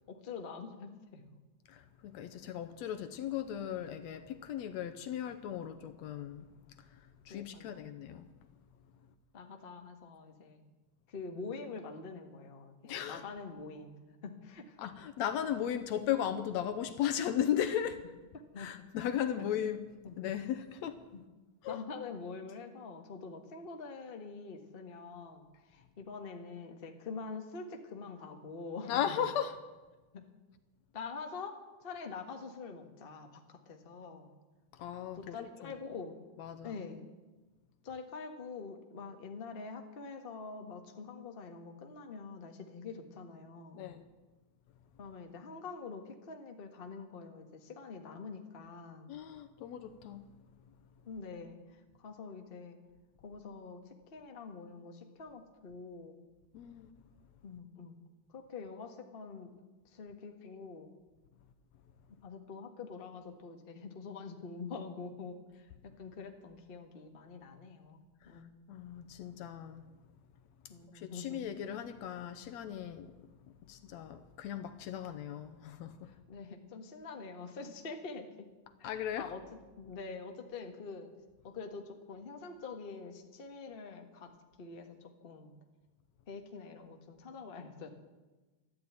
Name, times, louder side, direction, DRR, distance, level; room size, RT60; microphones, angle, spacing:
voice 1, 0.1-1.2 7.3-8.0 9.3-10.6 11.1-14.8 18.5-18.7 19.4-19.5 20.0-20.2 21.1-21.2 21.7-29.2 30.1-30.2 30.9-34.3 35.1-36.2 36.6-37.0 37.8-43.9 45.0-49.1 51.1-52.8 53.2-56.2 57.4-58.0 58.3-59.5 59.8-60.9 62.2-68.5 70.7-71.4 76.1-78.5 78.8-79.4 79.8-81.1 81.4-84.3 84.6-85.5 86.3-87.9, left 4 dB, 35° left, 0.9 m, -45 dB
voice 2, 1.7-6.5 6.8-8.3 12.8-13.2 14.8-18.0 18.6-19.8 20.2-21.0 21.6-21.8 28.9-29.6 34.7-35.8 36.4-36.8 43.8-44.1 49.1-50.2 56.5-56.9 68.2-68.4 68.7-69.8 70.9-73.1 73.7-76.1 78.8-79.3, left 10 dB, 75° left, 1.9 m, -37 dB
13.0 x 12.0 x 9.0 m
omnidirectional pair, 3.4 m